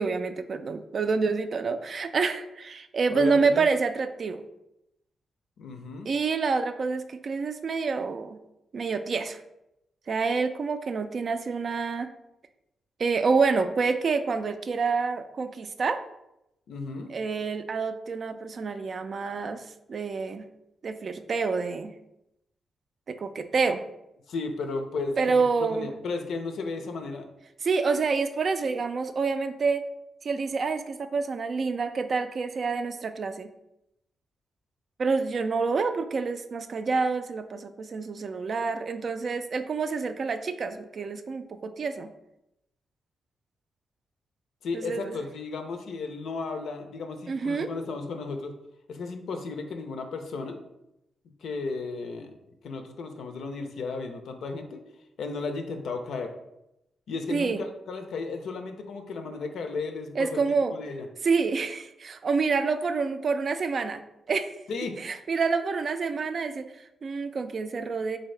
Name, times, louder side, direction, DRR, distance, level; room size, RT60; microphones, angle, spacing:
voice 1, 0.0-4.4 6.1-8.4 8.7-9.4 10.1-12.1 13.0-16.0 17.1-20.4 20.8-21.9 23.1-23.8 25.2-25.9 27.6-29.8 30.2-33.5 35.0-42.1 44.7-45.1 47.3-47.7 57.3-57.6 60.2-60.7 61.2-64.0 64.3-64.5 65.0-68.2, right 4 dB, 55° right, 9 dB, 0.3 m, -27 dB
voice 2, 3.1-3.7 5.6-6.1 16.7-17.1 24.3-25.2 25.6-27.3 44.6-48.5 48.9-50.6 51.4-52.3 52.6-54.8 55.2-56.3 57.1-60.4 60.7-61.1 64.7-65.0, left 4 dB, 80° left, 5 dB, 0.5 m, -34 dB
3.7 x 2.7 x 3.2 m, 0.86 s
cardioid pair, 65°, 0 cm